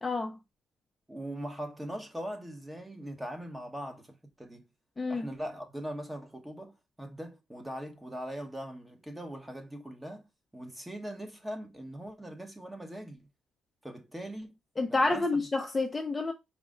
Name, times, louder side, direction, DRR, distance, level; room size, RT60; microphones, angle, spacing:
voice 1, 0.0-0.4 5.0-5.3 14.8-16.3, left 3 dB, 20° left, 0.5 m, -29 dB
voice 2, 1.1-4.7 5.1-10.2 10.5-13.3 13.8-14.5 14.9-15.4, equal, 10° right, 1.0 m, -41 dB
4.8 x 2.1 x 3.6 m
cardioid pair, 90°, 0 cm